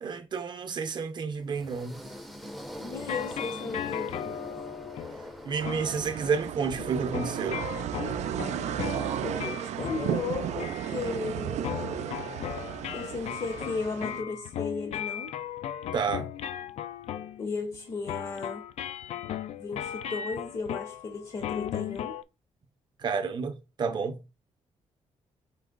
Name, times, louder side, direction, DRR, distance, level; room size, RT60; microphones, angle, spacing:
voice 1, 0.0-2.0 5.4-7.6 15.9-16.3 23.0-24.2, right 5 dB, 40° right, 0.7 m, -30 dB
sound 1, 1.4-6.5, equal, ahead, 0.5 m, -43 dB
voice 2, 2.8-4.4 9.2-11.6 12.9-15.3 17.4-18.6 19.5-22.2, left 4 dB, 40° left, 0.6 m, -35 dB
sound 2, 3.0-11.4 11.6-22.2, left 10 dB, 70° left, 0.4 m, -37 dB
sound 3, 5.6-14.2, right 9 dB, 90° right, 0.4 m, -34 dB
4.6 x 3.0 x 3.7 m
wide cardioid pair, 160°, 11 cm